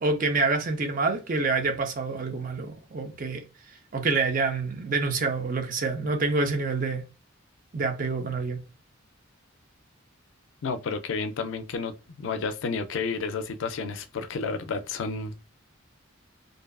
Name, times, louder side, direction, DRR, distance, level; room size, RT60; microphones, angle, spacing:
voice 1, 0.0-7.0 7.7-8.6, right 3 dB, 40° right, 0.5 m, -27 dB
voice 2, 10.6-11.9 12.2-15.4, left 4 dB, 70° left, 0.4 m, -31 dB
2.6 x 2.3 x 2.3 m
head